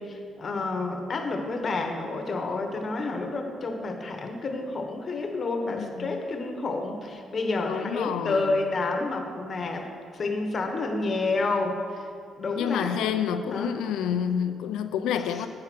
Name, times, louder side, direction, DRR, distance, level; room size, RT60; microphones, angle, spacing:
voice 1, 0.0-9.9 10.1-12.0 12.4-13.1 13.5-13.7 15.3-15.4, left 3 dB, 45° left, 4 dB, 1.0 m, -29 dB
voice 2, 5.8-6.1 7.6-8.6 12.6-15.5, left 8 dB, 90° left, 9 dB, 0.4 m, -28 dB
8.5 x 5.8 x 6.0 m, 2.3 s
cardioid pair, 90°, 0 cm